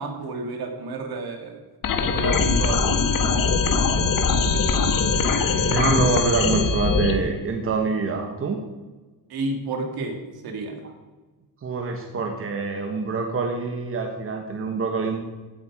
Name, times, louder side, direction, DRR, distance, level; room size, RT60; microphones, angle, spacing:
voice 1, 0.0-1.6 2.0-3.1 9.3-10.2 10.4-10.8, right 3 dB, 60° right, 4 dB, 2.7 m, -30 dB
sound 1, 1.8-7.1, left 4 dB, 55° left, 1.6 m, -21 dB
voice 2, 5.6-8.6 11.6-15.2, right 4 dB, 30° right, 3 dB, 1.4 m, -25 dB
16.5 x 8.8 x 5.0 m, 1.3 s
cardioid pair, 160°, 41 cm